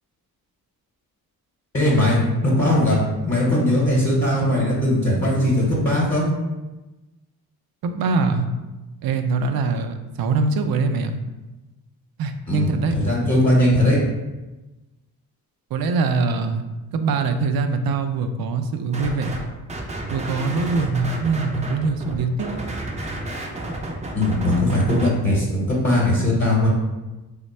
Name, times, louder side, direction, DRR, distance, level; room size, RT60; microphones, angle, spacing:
voice 1, 1.7-3.0 3.2-6.3 12.5-14.0 24.1-26.7, left 1 dB, 30° left, -5 dB, 1.0 m, -19 dB
voice 2, 7.8-8.5 9.0-11.2 12.2-13.0 15.7-16.6 16.9-19.3 20.1-22.6, right 4 dB, 70° right, 7 dB, 0.5 m, -23 dB
sound 1, 18.9-19.4 19.7-25.1, right 1 dB, 20° right, 0.5 m, -31 dB
3.1 x 2.1 x 4.2 m, 1.1 s
cardioid pair, 80°, 38 cm